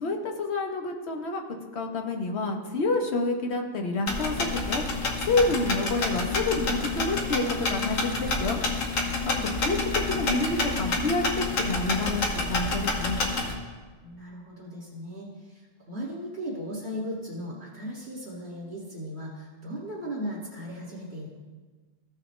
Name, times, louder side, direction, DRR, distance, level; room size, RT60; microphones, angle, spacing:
voice 1, 0.0-4.8 5.2-8.6 9.6-9.8 10.1-13.2, left 2 dB, 55° left, 3 dB, 1.2 m, -28 dB
sound 1, 4.1-13.5, left 3 dB, 90° left, 1.5 m, -28 dB
voice 2, 14.0-21.3, equal, 55° right, -6 dB, 2.3 m, -37 dB
15.0 x 5.7 x 3.2 m, 1.4 s
omnidirectional pair, 1.3 m